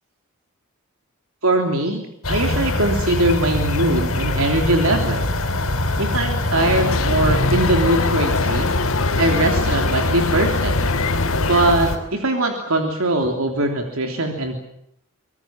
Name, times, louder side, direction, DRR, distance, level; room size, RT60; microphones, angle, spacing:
voice 1, 1.4-5.3 6.0-8.7 9.2-10.8 11.4-14.6, right 2 dB, 75° right, 3 dB, 3.2 m, -21 dB
sound 1, 2.2-12.0, left 2 dB, 90° left, 4.4 m, -22 dB
sound 2, 6.6-11.7, left 4 dB, 75° left, 1.4 m, -25 dB
25.0 x 21.0 x 7.4 m, 0.73 s
head